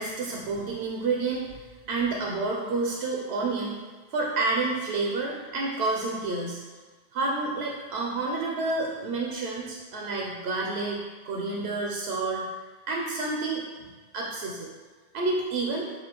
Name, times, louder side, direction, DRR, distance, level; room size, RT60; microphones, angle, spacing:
voice 1, 0.0-1.5 1.9-3.8 4.1-6.6 7.1-11.0 11.2-12.4 12.9-14.7 15.1-15.9, right 3 dB, 90° right, -1 dB, 0.8 m, -29 dB
5.3 x 2.7 x 2.9 m, 1.4 s
omnidirectional pair, 1.0 m